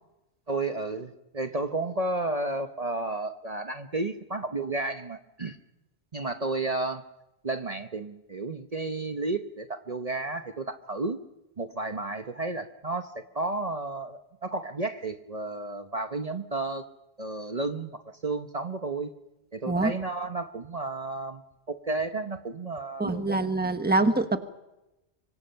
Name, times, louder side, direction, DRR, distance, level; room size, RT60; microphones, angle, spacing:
voice 1, 0.5-5.6 6.1-7.0 7.4-11.2 11.6-16.9 17.2-19.1 19.5-21.4 21.7-23.4, right 2 dB, 40° right, 6 dB, 1.0 m, -32 dB
voice 2, 23.0-24.4, right 2 dB, 10° right, 8 dB, 1.2 m, -25 dB
25.0 x 24.0 x 5.8 m, 0.95 s
omnidirectional pair, 1.1 m